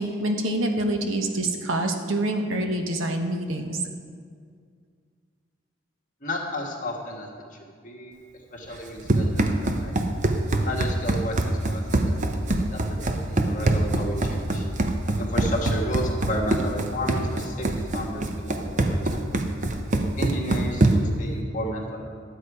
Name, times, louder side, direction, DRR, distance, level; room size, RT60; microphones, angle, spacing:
voice 1, 0.0-3.8, right 1 dB, 80° right, 4 dB, 1.1 m, -26 dB
voice 2, 6.2-7.3 7.8-8.1 8.5-9.9 10.6-11.4 11.7-12.0 12.5-14.6 15.2-17.7 17.9-19.3 20.2-22.0, equal, 40° left, -1 dB, 1.5 m, -32 dB
Run, 8.7-21.2, right 2 dB, 40° right, 0.7 m, -24 dB
12.0 x 8.1 x 4.8 m, 2.1 s
head